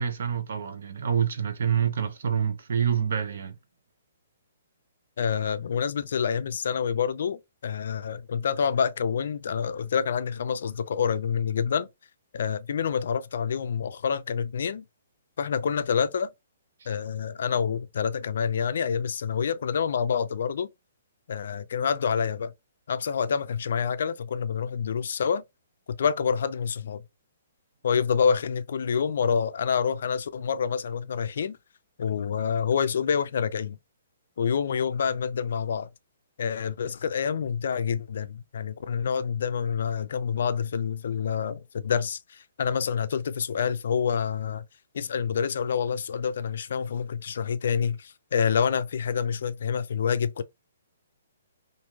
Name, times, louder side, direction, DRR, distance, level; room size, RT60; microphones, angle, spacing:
voice 1, 0.0-3.6 16.8-16.9, right 8 dB, 65° right, 0.5 m, -27 dB
voice 2, 5.2-11.9 12.3-14.8 15.4-16.3 16.9-20.7 21.3-22.5 22.9-25.4 25.9-27.0 27.8-31.6 32.0-33.8 34.4-35.9 36.4-44.6 44.9-50.4, left 7 dB, 65° left, 0.3 m, -27 dB
3.0 x 2.5 x 2.3 m
hypercardioid pair, 165°, 0 cm